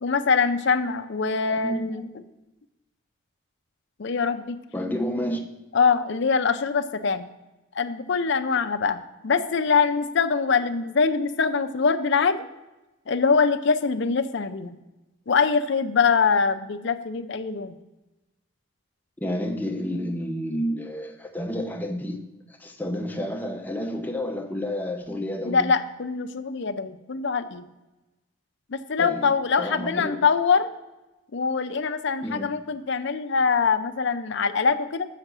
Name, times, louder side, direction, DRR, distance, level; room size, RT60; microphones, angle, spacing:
voice 1, 0.0-2.1 4.0-4.6 5.7-7.3 7.8-12.5 13.1-14.8 15.3-17.8 25.4-27.7 28.7-30.7 31.3-35.1, left 5 dB, 55° left, 0.5 m, -23 dB
voice 2, 1.5-2.1 4.7-5.5 19.2-25.8 29.0-30.2 32.2-32.6, equal, 10° left, 0.6 m, -30 dB
6.6 x 5.8 x 6.0 m
head